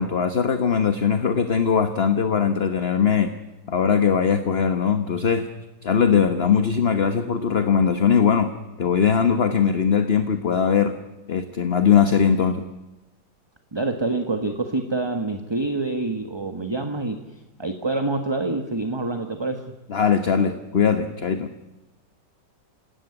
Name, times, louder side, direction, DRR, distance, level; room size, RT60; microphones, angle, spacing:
voice 1, 0.0-3.3 3.7-5.5 5.8-8.5 8.8-10.9 11.3-12.6 19.9-21.5, left 7 dB, 35° left, 9 dB, 1.3 m, -20 dB
voice 2, 13.7-17.2 17.6-19.8, right 2 dB, 15° right, 7 dB, 1.3 m, -26 dB
27.5 x 17.0 x 9.8 m, 1.1 s
omnidirectional pair, 2.0 m